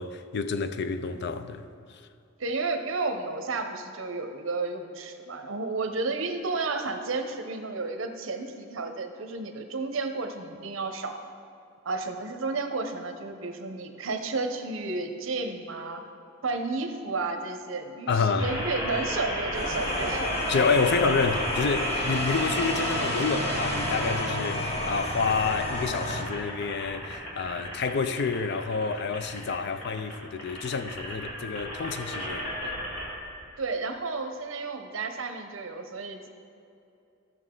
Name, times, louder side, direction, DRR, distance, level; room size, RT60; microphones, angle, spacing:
voice 1, 0.0-1.7 18.1-18.6 20.5-32.5, left 4 dB, 55° left, 0.5 m, -28 dB
voice 2, 2.4-11.2 11.8-16.0 16.4-20.3 33.6-36.3, right 3 dB, 75° right, 0.8 m, -32 dB
sound 1, 18.4-33.2, equal, 85° left, 2.4 m, -33 dB
sound 2, 19.5-26.2, left 1 dB, 30° left, 0.9 m, -33 dB
14.5 x 6.2 x 3.8 m
head